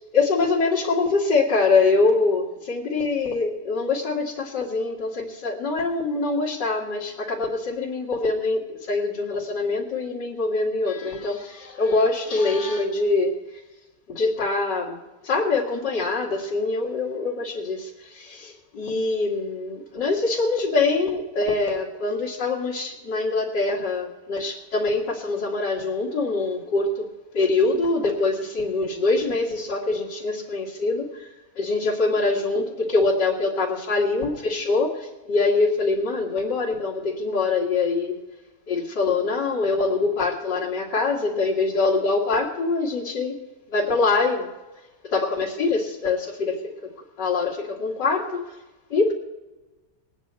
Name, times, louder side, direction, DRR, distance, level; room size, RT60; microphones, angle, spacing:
voice 1, 0.1-13.6 14.1-27.1 27.3-31.3 31.6-38.2 38.7-43.4 43.7-44.5 45.0-46.9 47.2-48.5 48.9-49.1, left 3 dB, 75° left, -6 dB, 2.6 m, -24 dB
22.0 x 9.3 x 4.3 m, 1.1 s
omnidirectional pair, 1.9 m